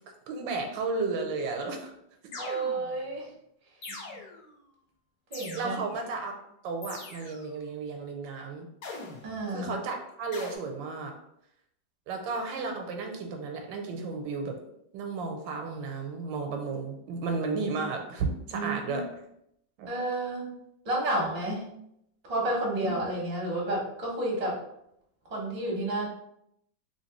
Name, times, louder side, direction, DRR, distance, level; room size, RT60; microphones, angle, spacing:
voice 1, 0.3-1.9 3.9-4.0 5.5-6.3 6.6-8.7 9.5-11.1 12.1-14.6 14.9-19.1 19.8-19.9 22.8-22.9, right 4 dB, 80° right, 3 dB, 1.3 m, -33 dB
sound 1, 2.3-3.1 3.8-4.5 5.3-6.0 6.8-7.5 8.8-9.4 10.3-10.6, left 3 dB, 65° left, 1.3 m, -42 dB
voice 2, 2.4-3.3 5.3-5.8 9.2-9.7 18.5-19.0 19.9-20.5 20.8-21.7 22.2-24.6 25.3-26.1, right 1 dB, 30° right, -3 dB, 0.7 m, -31 dB
3.1 x 2.9 x 2.9 m, 0.76 s
omnidirectional pair, 2.0 m